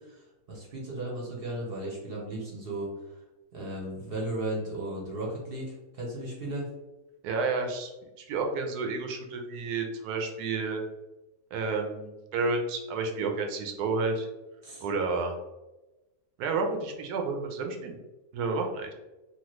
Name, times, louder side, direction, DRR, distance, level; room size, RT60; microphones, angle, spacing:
voice 1, 0.0-2.9 3.5-6.7 14.6-14.8, right 1 dB, 50° right, -3 dB, 0.8 m, -35 dB
voice 2, 7.2-7.9 8.2-10.8 11.5-14.3 14.8-15.4 16.4-17.9 18.3-18.9, right 4 dB, 85° right, 3 dB, 1.1 m, -30 dB
3.0 x 2.3 x 3.0 m, 1.1 s
omnidirectional pair, 1.6 m